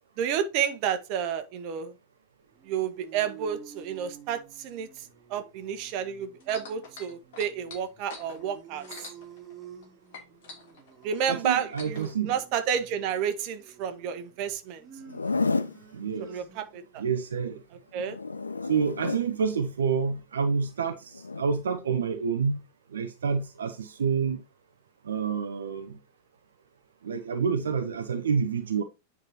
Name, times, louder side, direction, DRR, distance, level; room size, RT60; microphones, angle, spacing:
voice 1, 0.2-1.9 2.6-9.1 11.0-14.9 16.2-17.0 17.9-18.2, right 8 dB, 45° right, 1.3 m, -31 dB
sound 1, 2.5-17.0, right 7 dB, 20° right, 2.6 m, -51 dB
sound 2, 6.4-9.8 10.1-12.1 12.9-13.0, left 4 dB, 55° left, 3.0 m, -45 dB
voice 2, 11.3-12.4 15.9-16.4 17.0-17.6 18.6-22.6 22.9-24.4 25.0-26.0 27.0-28.8, right 6 dB, 65° right, 0.8 m, -28 dB
Zipper (clothing), 15.0-15.8 17.9-19.3 21.1-21.4, left 4 dB, 80° left, 0.6 m, -30 dB
9.1 x 5.4 x 2.9 m
figure-of-eight pair, 90°, 0 cm